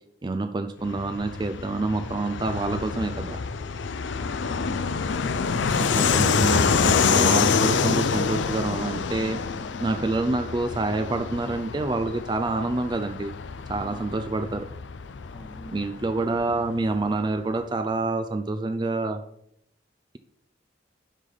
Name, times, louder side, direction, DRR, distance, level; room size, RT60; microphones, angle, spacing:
voice 1, 0.2-3.4 5.8-9.4 9.8-13.3 13.7-14.6 15.7-19.2, right 2 dB, 25° right, 8 dB, 0.4 m, -27 dB
Fixed-wing aircraft airplane, 0.8-17.0, left 5 dB, 80° left, 0.5 m, -27 dB
voice 2, 4.0-4.7 13.7-14.5 15.2-15.8, equal, 25° left, 4 dB, 1.1 m, -46 dB
11.5 x 4.1 x 5.0 m, 0.74 s
head